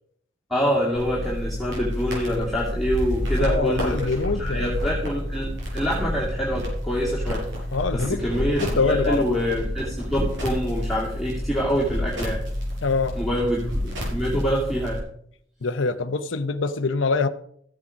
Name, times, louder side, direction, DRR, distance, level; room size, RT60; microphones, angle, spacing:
voice 1, 0.5-7.5 7.9-12.4 13.1-15.1, equal, ahead, 2.7 m, -26 dB
sound 1, 0.9-15.0, equal, 70° right, 6.6 m, -29 dB
voice 2, 3.4-4.7 7.7-9.4 12.8-13.2 15.6-17.3, left 4 dB, 70° left, 0.7 m, -25 dB
14.5 x 8.6 x 5.1 m
head